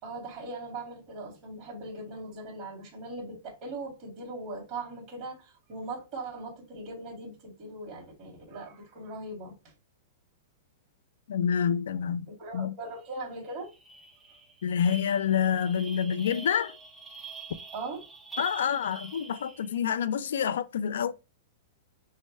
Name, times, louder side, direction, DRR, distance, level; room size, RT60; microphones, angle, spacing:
voice 1, 0.0-9.6 12.3-13.7 17.7-18.0 18.9-19.0, right 2 dB, 30° right, 2.3 m, -40 dB
voice 2, 11.3-12.7 14.6-16.8 18.4-21.1, left 8 dB, 85° left, 0.4 m, -28 dB
sound 1, 13.0-13.2 13.5-19.9, right 4 dB, 5° right, 1.0 m, -45 dB
6.3 x 2.2 x 3.2 m
supercardioid pair, 160°, 0 cm